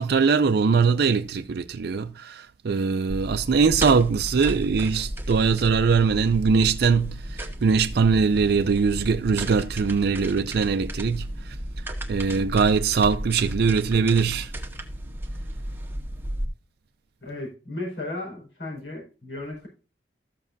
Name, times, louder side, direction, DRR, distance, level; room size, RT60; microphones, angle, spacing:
voice 1, 0.0-11.6 12.1-14.5, right 5 dB, 60° right, 0.4 m, -22 dB
sound 1, 3.1-16.4, right 1 dB, 15° right, 1.2 m, -34 dB
voice 2, 17.2-19.7, left 2 dB, 90° left, 4.8 m, -35 dB
13.5 x 7.2 x 2.6 m
head